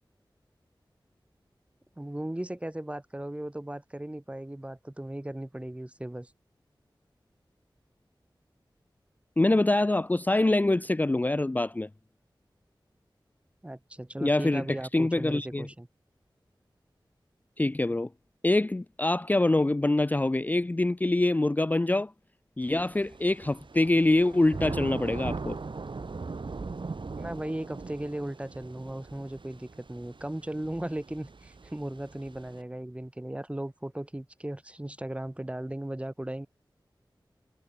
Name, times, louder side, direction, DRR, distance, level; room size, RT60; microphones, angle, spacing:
voice 1, 2.0-6.3 13.6-15.9 27.2-36.5, right 1 dB, 15° right, 0.8 m, -37 dB
voice 2, 9.4-11.9 14.2-14.6 14.9-15.7 17.6-18.1 18.4-22.1 22.6-25.6, left 2 dB, 20° left, 0.4 m, -25 dB
Thunder / Rain, 22.7-32.6, right 4 dB, 75° right, 2.7 m, -40 dB
wide cardioid pair, 70°, 8 cm